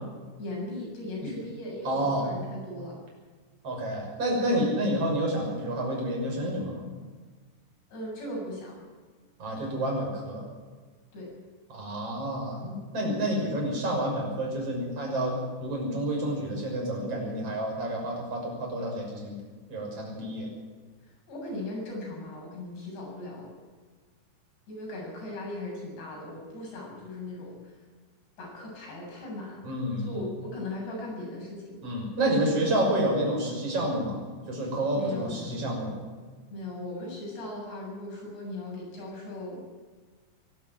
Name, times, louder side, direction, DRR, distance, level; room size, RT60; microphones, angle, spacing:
voice 1, 0.4-3.0 7.9-8.7 11.1-11.3 21.3-23.5 24.7-27.7 28.4-29.6 30.0-31.8 34.9-35.6 36.5-39.6, left 1 dB, 80° left, -2 dB, 9.8 m, -38 dB
voice 2, 1.8-2.3 3.6-6.8 9.4-10.4 11.7-19.4 19.7-20.5 29.6-30.2 31.8-34.2 34.5-36.0, right 1 dB, 35° right, -1 dB, 7.1 m, -29 dB
23.0 x 12.5 x 9.1 m, 1.5 s
omnidirectional pair, 4.9 m